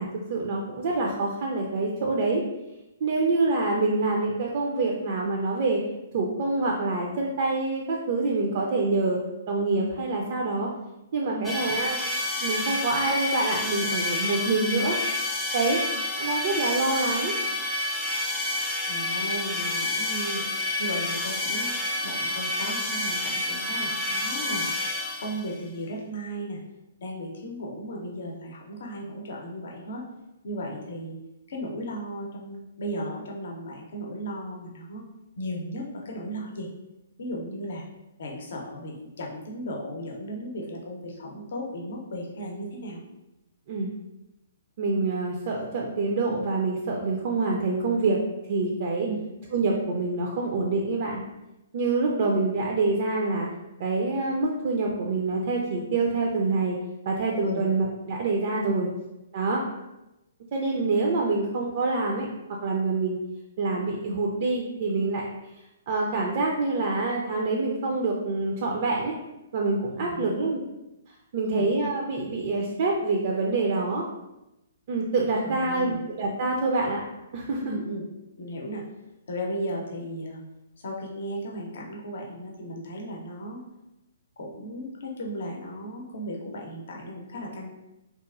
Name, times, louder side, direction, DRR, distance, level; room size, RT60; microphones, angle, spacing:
voice 1, 0.0-2.4 3.0-5.8 6.1-9.2 9.5-10.7 11.1-12.0 12.4-15.0 15.5-15.8 16.2-17.3 43.7-43.9 44.8-48.2 48.5-49.1 49.5-51.2 51.7-53.5 53.8-56.8 57.1-58.9 59.3-59.6 60.5-62.3 62.6-63.2 63.6-65.3 65.9-69.1 69.5-70.6 71.3-74.0 74.9-77.0 77.3-77.6, right 3 dB, 50° right, 0 dB, 0.4 m, -26 dB
sound 1, 11.4-25.5, left 2 dB, 15° left, 0.6 m, -29 dB
voice 2, 18.9-20.4 20.8-21.7 22.0-24.7 25.2-26.6 27.0-30.0 30.4-31.2 31.5-35.0 35.4-36.7 37.2-37.8 38.2-43.0 49.0-49.2 57.4-57.6 58.6-58.8 69.9-70.5 71.4-71.7 75.4-76.0 77.6-78.1 78.4-78.8 79.3-80.4 80.8-83.6 84.4-87.7, equal, 60° left, -1 dB, 0.6 m, -35 dB
2.9 x 2.3 x 2.4 m, 0.95 s
figure-of-eight pair, 125°, 0 cm